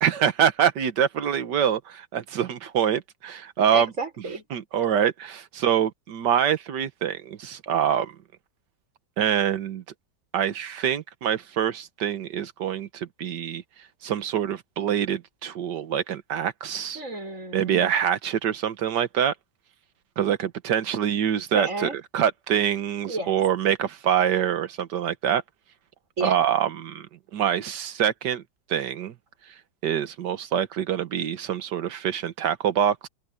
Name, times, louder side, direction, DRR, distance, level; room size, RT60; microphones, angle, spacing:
voice 1, 0.0-3.9 4.5-8.1 9.2-9.8 10.3-13.6 14.0-17.0 17.5-19.3 20.2-25.4 26.2-27.1 27.3-28.4 28.7-29.1 29.8-33.1, right 9 dB, 70° right, 1.8 m, -25 dB
voice 2, 3.7-4.4 17.0-17.8 21.5-22.0 23.0-23.3 26.2-26.3, right 2 dB, 45° right, 5.5 m, -32 dB
open air
omnidirectional pair, 2.0 m